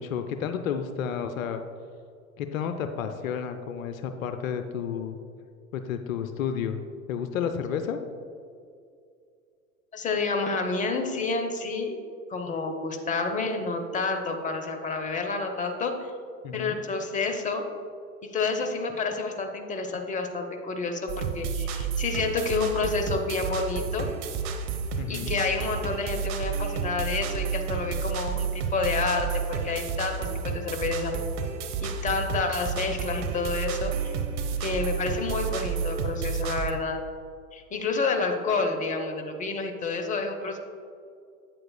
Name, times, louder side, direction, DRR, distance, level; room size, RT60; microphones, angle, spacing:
voice 1, 0.0-1.6 2.4-5.2 5.7-6.8 7.1-8.0 16.4-16.8 25.0-25.3, left 7 dB, 70° left, 8 dB, 0.6 m, -31 dB
voice 2, 9.9-12.0 12.3-16.1 16.5-17.7 18.2-24.1 25.1-31.2 31.8-34.1 34.6-37.0 37.5-40.6, left 4 dB, 20° left, 5 dB, 0.8 m, -29 dB
sound 1, 21.1-36.7, right 6 dB, 60° right, 0.9 m, -31 dB
8.4 x 7.6 x 2.2 m, 2.3 s
figure-of-eight pair, 80°, 42 cm